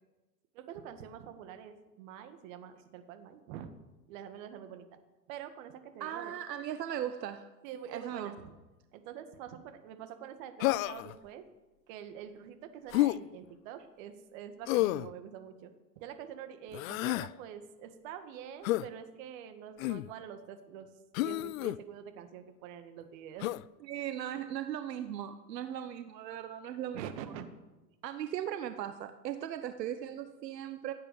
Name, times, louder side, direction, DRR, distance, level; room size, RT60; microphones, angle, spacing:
voice 1, 0.5-3.7 4.1-4.9 5.3-6.3 7.6-8.5 8.9-11.4 11.9-15.7 16.0-20.9 21.2-23.5 26.9-27.4, right 9 dB, 55° right, 8 dB, 1.9 m, -46 dB
voice 2, 6.0-7.5 7.9-8.3 23.8-27.1 28.0-30.9, right 10 dB, 85° right, 10 dB, 1.0 m, -38 dB
Human voice, 10.6-11.2 12.9-13.2 14.7-15.1 16.7-17.3 18.6-18.9 19.8-20.1 21.1-21.8 23.4-23.6, left 18 dB, 60° left, 0.5 m, -30 dB
16.0 x 8.6 x 6.9 m, 1.1 s
hypercardioid pair, 115°, 48 cm